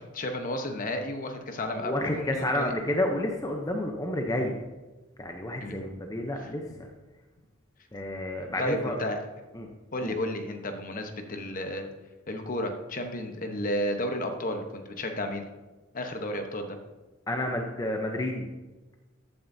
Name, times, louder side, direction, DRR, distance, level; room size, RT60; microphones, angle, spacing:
voice 1, 0.1-2.7 5.6-5.8 6.4-6.5 8.6-9.2 9.9-11.8 12.3-15.4 15.9-16.8, left 1 dB, 40° left, 5 dB, 1.0 m, -32 dB
voice 2, 1.8-4.5 5.2-6.9 7.9-9.0 9.5-9.7 10.0-10.2 17.3-18.5, left 1 dB, 15° left, 2 dB, 0.7 m, -30 dB
14.5 x 8.8 x 2.7 m, 1.2 s
head